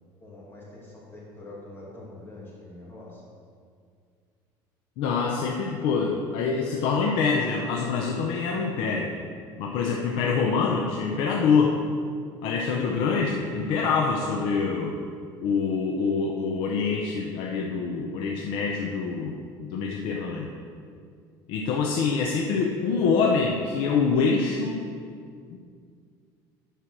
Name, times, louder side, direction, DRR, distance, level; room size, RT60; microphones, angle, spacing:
voice 1, 0.2-3.2, left 2 dB, 25° left, -5 dB, 2.4 m, -44 dB
voice 2, 5.0-9.1 9.6-11.8 12.4-15.0 15.4-20.5 21.5-24.8 25.5-25.6, left 5 dB, 70° left, 0 dB, 0.8 m, -25 dB
10.0 x 4.6 x 6.1 m, 2.2 s
cardioid pair, 150°, 9 cm